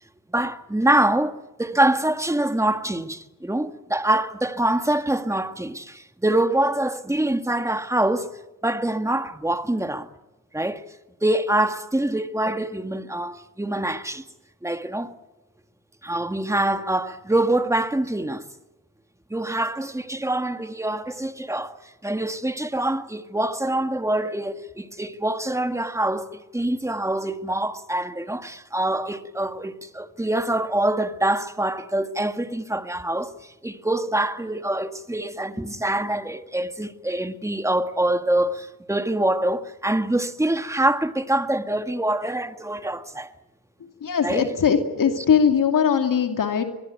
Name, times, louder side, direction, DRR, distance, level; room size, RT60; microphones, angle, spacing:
voice 1, 0.3-8.3 8.6-10.1 10.5-10.8 11.2-14.2 14.6-15.2 16.0-18.4 19.3-21.8 22.0-43.3 44.2-44.5, right 1 dB, 10° right, 1.8 m, -25 dB
voice 2, 44.0-46.6, left 7 dB, 65° left, 2.7 m, -20 dB
23.0 x 22.0 x 9.2 m
cardioid pair, 70°, 34 cm